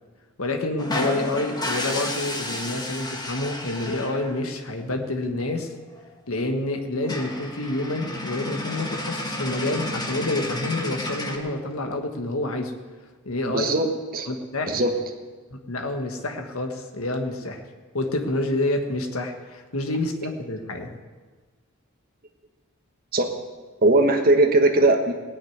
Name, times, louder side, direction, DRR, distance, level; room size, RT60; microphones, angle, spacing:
voice 1, 0.4-5.7 6.3-12.7 13.2-13.9 14.3-14.8 15.5-17.6 17.9-21.0, left 2 dB, 75° left, 5 dB, 1.4 m, -28 dB
sound 1, 0.8-4.4 6.0-6.1 6.3-6.5 6.8-6.9 7.0-11.4, left 1 dB, 20° left, 1.4 m, -31 dB
voice 2, 13.5-13.9 14.1-14.3 14.7-14.9 23.1-23.3 23.8-25.1, right 2 dB, 45° right, 3 dB, 1.3 m, -19 dB
18.5 x 6.4 x 9.4 m, 1.4 s
head